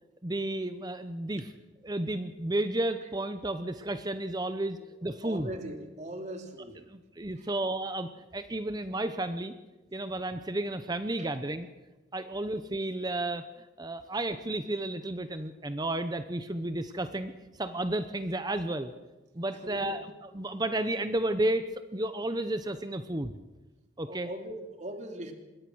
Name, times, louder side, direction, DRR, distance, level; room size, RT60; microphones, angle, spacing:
voice 1, 0.2-1.5 1.8-5.5 6.9-9.5 9.9-11.7 12.1-17.3 17.6-18.9 19.3-21.6 21.9-23.3 24.0-24.3, right 1 dB, 20° right, 10 dB, 0.8 m, -32 dB
voice 2, 4.8-6.8 7.4-7.5 11.2-11.3 19.5-20.0 24.1-25.3, right 1 dB, 40° right, 4 dB, 3.1 m, -40 dB
25.5 x 21.5 x 6.3 m, 1.2 s
head